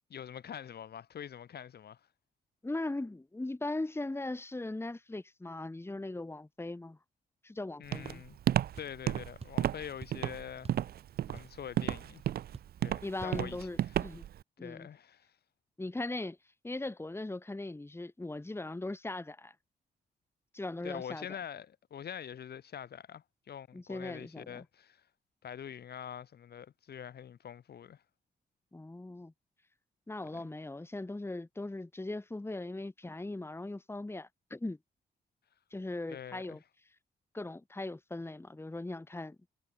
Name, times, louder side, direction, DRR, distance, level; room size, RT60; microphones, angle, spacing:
voice 1, 0.1-2.0 7.8-8.4 8.8-10.7 11.3-12.2 12.8-14.0 14.6-15.3 20.8-25.0 25.4-28.0 30.3-30.5 36.1-36.6, left 8 dB, 65° left, 1.8 m, -45 dB
voice 2, 2.6-7.0 7.4-8.2 13.0-14.2 14.6-14.9 15.8-16.4 16.6-19.5 20.5-21.3 23.7-24.6 28.7-29.3 30.1-34.8 35.7-36.6 37.3-39.4, left 2 dB, 15° left, 1.5 m, -39 dB
Walk footsteps, 7.9-14.4, right 11 dB, 60° right, 0.4 m, -32 dB
sound 1, 8.8-9.0 9.4-9.7 10.0-10.2 10.6-10.9 11.1-11.7 11.9-12.1 12.5-12.8 13.2-13.4, right 5 dB, 35° right, 1.4 m, -48 dB
cardioid pair, 70°, 18 cm